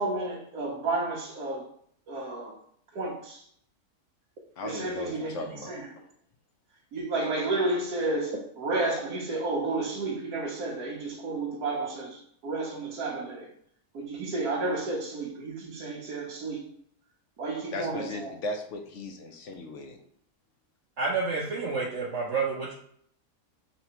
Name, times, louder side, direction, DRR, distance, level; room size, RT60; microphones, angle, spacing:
voice 1, 0.0-1.7 2.1-2.6 2.9-3.4 4.6-5.9 6.9-13.5 13.9-16.7 17.4-18.4, right 2 dB, 85° right, 1.3 m, -31 dB
voice 2, 4.6-5.7 17.7-20.0, left 2 dB, 60° left, 0.9 m, -37 dB
voice 3, 21.0-22.7, right 4 dB, 60° right, 0.9 m, -29 dB
4.1 x 3.4 x 2.9 m
omnidirectional pair, 1.6 m